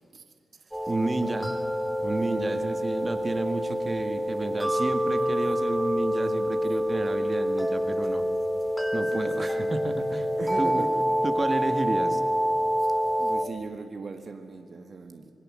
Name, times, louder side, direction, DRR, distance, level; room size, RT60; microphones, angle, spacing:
sound 1, 0.7-13.4, equal, ahead, 2.9 m, -27 dB
voice 1, 0.9-1.5 2.0-8.3 8.9-10.3 10.6-10.8 11.2-12.2, right 2 dB, 25° right, 8 dB, 1.7 m, -31 dB
voice 2, 2.2-2.9 9.1-9.7 10.4-11.0 13.2-15.3, right 4 dB, 45° right, 6 dB, 1.8 m, -39 dB
27.0 x 22.5 x 7.5 m, 2.4 s
wide cardioid pair, 125°, 0 cm